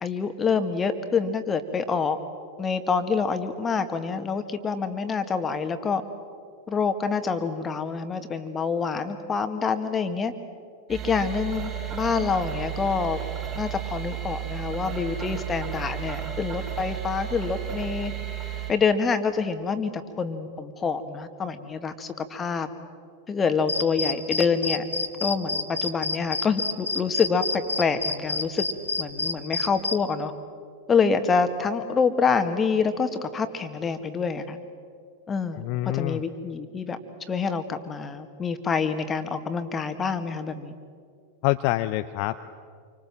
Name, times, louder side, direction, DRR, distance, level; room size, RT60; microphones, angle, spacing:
voice 1, 0.0-2.2 2.6-6.0 6.7-10.3 10.9-13.2 13.6-18.1 18.7-19.9 20.2-22.7 23.3-24.8 25.2-28.6 29.0-30.3 30.9-34.6 35.3-35.6 35.9-37.0 37.3-40.7, left 5 dB, 20° left, 9 dB, 2.0 m, -26 dB
sound 1, 10.9-18.7, right 11 dB, 30° right, 5.8 m, -33 dB
sound 2, 23.7-30.0, left 3 dB, 80° left, 1.8 m, -28 dB
voice 2, 35.6-36.2 41.4-42.4, left 17 dB, 45° left, 10 dB, 0.7 m, -26 dB
27.5 x 25.0 x 7.6 m, 2.2 s
figure-of-eight pair, 90°, 0 cm